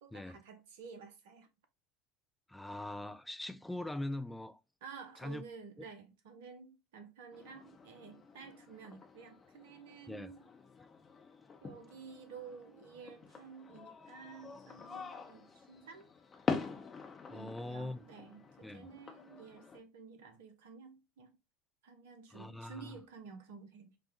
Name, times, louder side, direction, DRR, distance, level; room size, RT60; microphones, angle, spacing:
voice 1, 0.0-1.5 4.8-10.4 11.6-16.1 17.3-21.4 21.8-24.0, right 5 dB, 65° right, 0.8 m, -52 dB
voice 2, 2.5-4.6 5.2-5.4 10.1-10.3 10.8-10.9 17.3-18.0 18.6-19.0 22.3-23.0, left 1 dB, 5° left, 0.4 m, -42 dB
sound 1, 7.3-19.8, left 5 dB, 30° left, 0.8 m, -45 dB
5.0 x 2.3 x 2.9 m
figure-of-eight pair, 70°, 0 cm